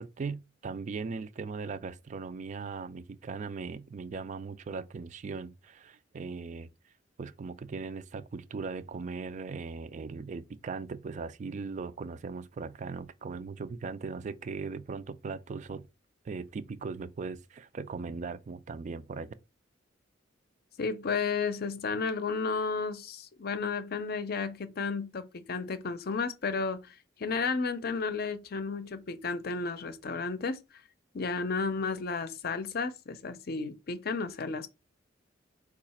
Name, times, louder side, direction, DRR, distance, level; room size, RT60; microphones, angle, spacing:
voice 1, 0.0-6.7 7.2-15.9 16.2-19.3, right 4 dB, 40° right, 0.3 m, -39 dB
voice 2, 20.8-30.6 31.1-34.7, left 4 dB, 55° left, 0.5 m, -33 dB
4.6 x 2.4 x 4.2 m
head